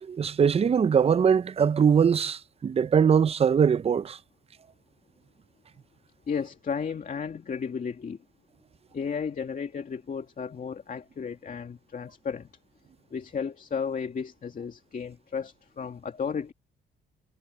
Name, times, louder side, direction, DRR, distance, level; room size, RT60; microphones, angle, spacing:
voice 1, 0.0-4.2, right 7 dB, 30° right, 0.5 m, -22 dB
voice 2, 6.3-8.2 8.9-12.5 13.1-16.5, left 6 dB, 40° left, 2.3 m, -33 dB
cardioid pair, 90°, 20 cm